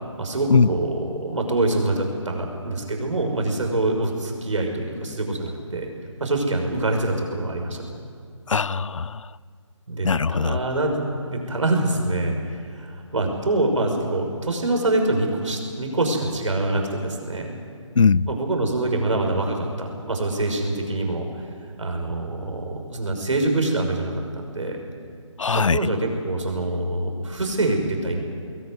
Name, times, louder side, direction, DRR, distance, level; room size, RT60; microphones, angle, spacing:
voice 1, 0.2-5.9 6.2-7.8 9.9-12.4 12.7-17.5 18.3-21.3 21.8-24.8 25.5-28.2, right 2 dB, 70° right, 3 dB, 6.1 m, -25 dB
voice 2, 8.5-9.3 10.0-10.6 18.0-18.3 25.4-25.8, left 5 dB, 75° left, 21 dB, 0.6 m, -20 dB
21.0 x 19.0 x 9.5 m, 2.2 s
figure-of-eight pair, 160°, 16 cm